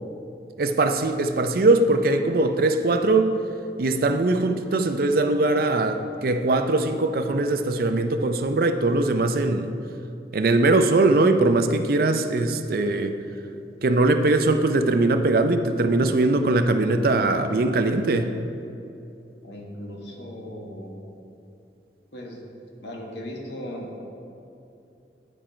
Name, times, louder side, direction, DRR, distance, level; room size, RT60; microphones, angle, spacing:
voice 1, 0.6-3.3 3.8-9.7 10.3-13.2 13.8-18.3, right 2 dB, 55° right, 7 dB, 0.5 m, -21 dB
voice 2, 19.4-20.9 22.1-22.4 22.8-24.0, left 1 dB, 80° left, 0 dB, 1.4 m, -37 dB
11.0 x 4.4 x 5.1 m, 2.7 s
head